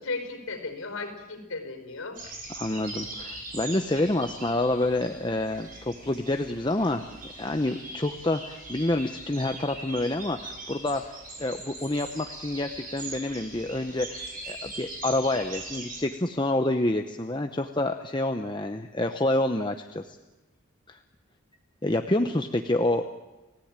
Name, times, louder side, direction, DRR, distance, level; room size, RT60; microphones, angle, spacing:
voice 1, 0.0-2.3, left 3 dB, 80° left, 7 dB, 5.0 m, -35 dB
sound 1, 2.1-16.0, right 2 dB, 40° right, 6.8 m, -41 dB
voice 2, 2.6-20.2 20.9-21.0 21.8-23.0, left 1 dB, 20° left, 6 dB, 0.8 m, -28 dB
30.0 x 16.5 x 8.9 m, 1.1 s
head